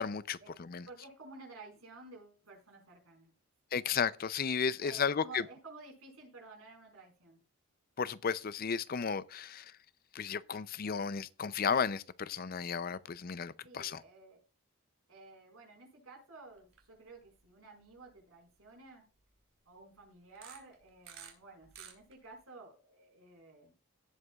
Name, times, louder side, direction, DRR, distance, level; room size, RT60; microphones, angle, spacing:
voice 1, 0.0-0.4 0.7-0.8 3.7-5.4 8.0-9.6 10.2-14.0, left 6 dB, 40° left, 0.5 m, -33 dB
voice 2, 0.9-3.3 4.8-7.4 13.6-14.4 15.1-19.0 19.6-23.7, right 3 dB, 80° right, 4.9 m, -53 dB
sound 1, 16.6-16.9 17.3-17.4 18.1-18.2 20.3-21.3 21.6-22.3, right 8 dB, 65° right, 3.3 m, -51 dB
17.0 x 8.0 x 2.4 m
head